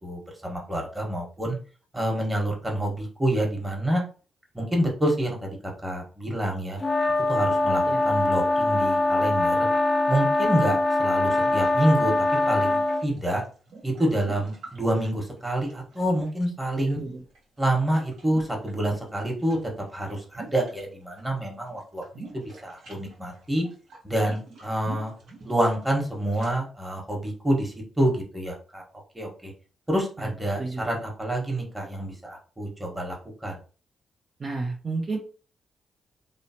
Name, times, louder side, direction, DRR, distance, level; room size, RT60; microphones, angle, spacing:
voice 1, 0.0-1.6 1.9-4.0 4.5-5.6 5.8-6.8 7.3-9.7 10.1-12.1 12.5-13.4 13.8-17.0 17.6-19.6 19.9-23.7 24.0-25.1 25.4-28.8 29.1-29.5 29.9-33.2 33.4-33.5, right 1 dB, 10° right, -1 dB, 1.2 m, -27 dB
sound 1, 6.8-13.0, left 2 dB, 35° left, 0.5 m, -23 dB
sound 2, 11.0-16.4 16.9-18.7 19.0-21.3 21.5-26.5, right 3 dB, 70° right, 1.0 m, -47 dB
voice 2, 16.9-17.2 30.2-30.3 30.6-30.8 34.4-35.2, right 3 dB, 45° right, 0 dB, 0.6 m, -31 dB
2.9 x 2.0 x 2.8 m, 0.38 s
supercardioid pair, 55°, 0 cm